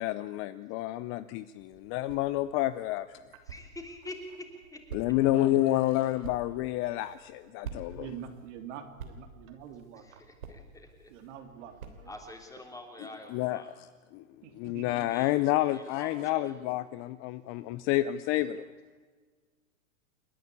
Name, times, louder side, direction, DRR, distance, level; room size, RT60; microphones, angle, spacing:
voice 1, 0.0-3.2 4.9-8.1 13.3-13.6 14.1-14.2 14.6-18.6, left 15 dB, 30° left, 15 dB, 0.5 m, -29 dB
sound 1, 1.6-12.5, right 5 dB, 80° right, 3.3 m, -49 dB
voice 2, 3.4-4.8 5.4-6.2 9.9-11.1 12.0-13.7 15.1-16.6, left 1 dB, 10° left, 3 dB, 3.4 m, -47 dB
voice 3, 5.2-5.7 7.7-10.2 11.1-12.1 14.4-15.1 18.4-18.5, right 9 dB, 55° right, 6 dB, 3.0 m, -45 dB
29.0 x 11.0 x 8.5 m, 1.5 s
hypercardioid pair, 120°, 42 cm